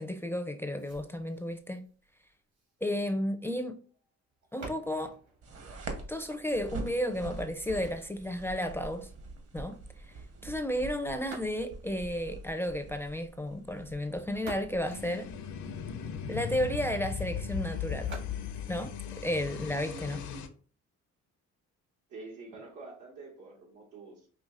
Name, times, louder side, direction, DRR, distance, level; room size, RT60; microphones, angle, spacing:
voice 1, 0.0-1.8 2.8-3.8 4.5-5.1 6.1-9.1 9.5-9.8 10.1-10.2 10.4-15.3 16.3-18.1 18.7-18.9 19.2-20.2, equal, 10° left, 0.4 m, -33 dB
sound 1, 0.8-6.8 11.1-12.0 14.0-16.0 18.0-20.0, right 2 dB, 70° right, 2.0 m, -50 dB
sound 2, 5.4-18.9, right 3 dB, 50° right, 1.0 m, -46 dB
sound 3, 14.9-20.5, left 7 dB, 75° left, 0.6 m, -37 dB
voice 2, 22.1-24.3, right 3 dB, 90° right, 1.7 m, -47 dB
5.4 x 2.8 x 2.4 m
cardioid pair, 90°, 30 cm